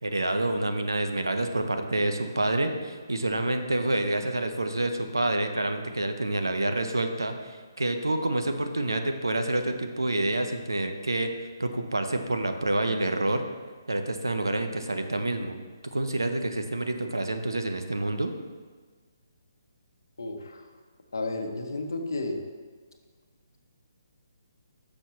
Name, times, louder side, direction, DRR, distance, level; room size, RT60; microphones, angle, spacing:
voice 1, 0.0-11.3 11.6-13.4 13.9-15.6 15.9-18.3, right 2 dB, 75° right, 6 dB, 0.8 m, -28 dB
voice 2, 20.2-20.7 21.1-22.4, left 2 dB, 65° left, 4 dB, 0.9 m, -32 dB
9.8 x 6.4 x 3.1 m, 1.5 s
figure-of-eight pair, 140°, 2 cm